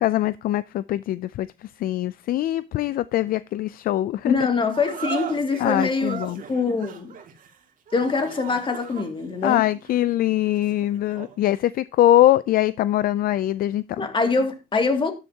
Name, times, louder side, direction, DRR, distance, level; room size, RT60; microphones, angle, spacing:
voice 1, 0.0-4.3 5.6-6.4 9.4-14.0, left 13 dB, 60° left, 0.4 m, -22 dB
voice 2, 4.2-6.2 6.5-7.1 7.9-9.6 14.0-15.1, left 4 dB, 30° left, 2.4 m, -24 dB
sound 1, 4.7-11.4, right 8 dB, 55° right, 2.3 m, -38 dB
12.5 x 9.9 x 2.9 m
cardioid pair, 110°, 17 cm